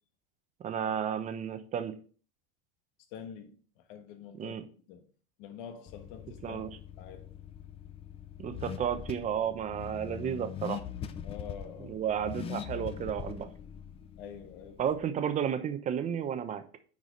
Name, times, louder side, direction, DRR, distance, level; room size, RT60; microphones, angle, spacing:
voice 1, 0.6-1.9 4.4-4.6 6.4-6.7 8.4-10.8 11.8-13.5 14.8-16.6, right 8 dB, 25° right, 0.8 m, -32 dB
voice 2, 3.1-4.6 4.9-5.1 5.4-6.7 7.0-7.3 11.2-12.0 14.2-14.9, left 7 dB, 65° left, 1.4 m, -46 dB
Car / Accelerating revving vroom, 5.9-15.0, left 9 dB, 20° left, 0.4 m, -42 dB
9.5 x 4.8 x 3.8 m
supercardioid pair, 145°, 30 cm